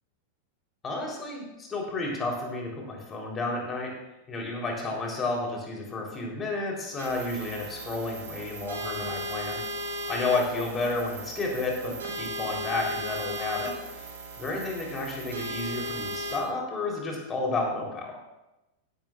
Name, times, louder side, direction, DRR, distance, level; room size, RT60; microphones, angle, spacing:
voice 1, 0.8-3.9 4.3-9.6 10.1-14.0 14.4-18.2, left 3 dB, 20° left, -1 dB, 3.7 m, -31 dB
sound 1, 7.0-16.4, right 1 dB, 65° right, 4.2 m, -36 dB
16.5 x 11.5 x 2.5 m, 0.96 s
figure-of-eight pair, 90°, 0 cm